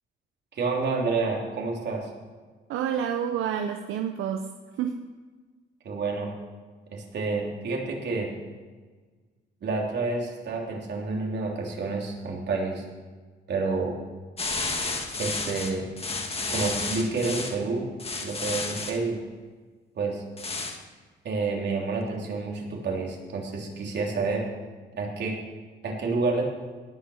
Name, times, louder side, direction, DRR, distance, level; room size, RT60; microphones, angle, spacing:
voice 1, 0.5-2.1 5.8-6.3 6.9-8.3 9.6-12.8 13.5-13.9 15.2-15.9 16.5-17.9 18.2-19.2 19.9-20.2 21.2-24.5 25.0-25.4 25.8-26.4, right 3 dB, 60° right, -1 dB, 3.4 m, -29 dB
voice 2, 2.7-4.5 4.8-5.1, right 8 dB, 85° right, 6 dB, 0.7 m, -29 dB
sound 1, 14.4-17.6 18.0-19.0 20.4-20.8, left 3 dB, 30° left, 1.8 m, -31 dB
18.5 x 6.3 x 6.4 m, 1.4 s
cardioid pair, 90°, 20 cm